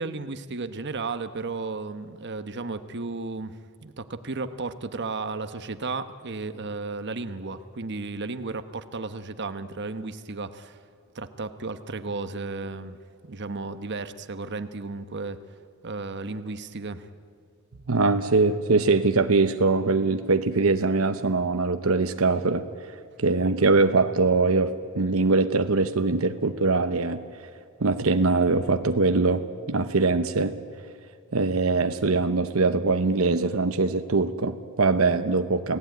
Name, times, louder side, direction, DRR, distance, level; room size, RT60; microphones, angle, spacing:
voice 1, 0.0-10.8 11.1-13.0 13.2-15.4 15.8-17.1, right 3 dB, 55° right, 10 dB, 1.1 m, -34 dB
voice 2, 17.9-22.6 23.2-27.2 27.8-30.5 31.3-35.8, right 3 dB, 75° right, 8 dB, 0.9 m, -22 dB
29.5 x 17.5 x 9.3 m, 2.3 s
head